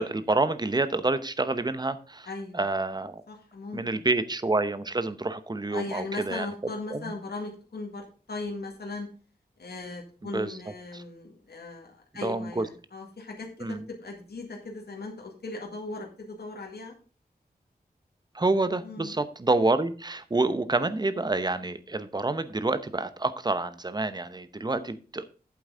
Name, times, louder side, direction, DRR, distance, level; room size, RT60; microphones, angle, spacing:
voice 1, 0.0-2.3 2.5-3.2 3.7-6.5 6.9-7.1 10.3-10.6 10.9-11.0 12.2-12.7 13.6-13.8 18.3-25.2, right 2 dB, 25° right, 12 dB, 0.8 m, -28 dB
voice 2, 2.3-2.7 3.3-4.0 5.7-9.1 9.6-13.8 14.0-16.9 18.8-19.2, left 3 dB, 80° left, 1 dB, 2.0 m, -38 dB
8.5 x 7.9 x 3.8 m, 0.38 s
wide cardioid pair, 100°, 16 cm